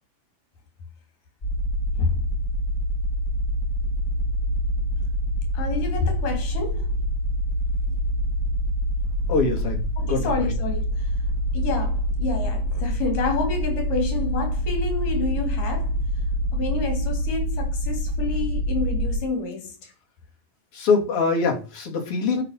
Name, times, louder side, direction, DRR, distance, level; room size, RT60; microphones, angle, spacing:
sound 1, 1.4-19.2, equal, 20° left, 4.2 m, -26 dB
voice 1, 5.5-6.9 10.0-11.1 11.5-16.0 16.5-19.9, left 4 dB, 75° left, 4.7 m, -29 dB
voice 2, 9.3-10.2 20.7-22.4, left 4 dB, 45° left, 3.5 m, -23 dB
11.5 x 5.9 x 6.6 m
omnidirectional pair, 3.9 m